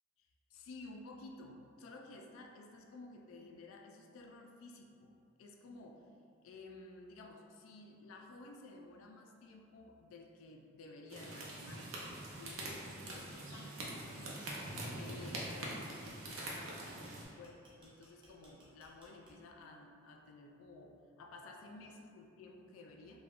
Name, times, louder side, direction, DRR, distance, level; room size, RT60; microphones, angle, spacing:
voice 1, 0.2-6.1 6.4-11.9 12.3-23.2, left 2 dB, 75° left, 2 dB, 0.3 m, -54 dB
sound 1, 11.1-17.2, right 1 dB, 90° right, 0.5 m, -44 dB
sound 2, 12.1-19.6, right 1 dB, 25° right, 0.5 m, -64 dB
3.4 x 2.2 x 2.3 m, 2.4 s
head